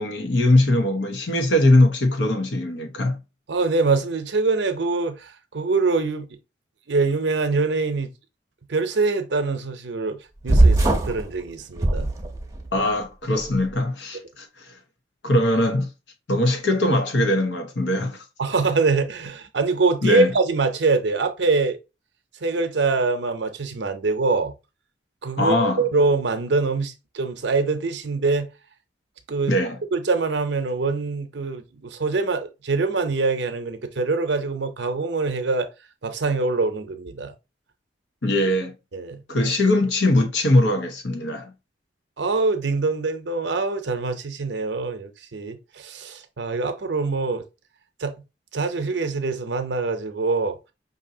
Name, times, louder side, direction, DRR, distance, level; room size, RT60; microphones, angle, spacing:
voice 1, 0.0-3.2 12.7-14.7 15.2-15.9 16.3-18.2 20.0-20.3 25.4-25.8 29.5-29.8 38.2-38.7 39.3-41.5, left 1 dB, 80° left, 1.0 m, -21 dB
voice 2, 3.5-6.3 6.9-8.1 8.7-10.2 10.4-12.1 18.4-21.8 22.4-24.5 25.2-28.5 29.3-29.5 29.9-35.7 36.0-37.3 38.9-39.2 42.2-47.4 48.0-48.1 48.5-50.6, right 3 dB, 75° right, 0.7 m, -24 dB
sound 1, 10.5-11.2 11.8-12.7, right 2 dB, 15° right, 0.7 m, -18 dB
5.3 x 2.8 x 2.7 m
head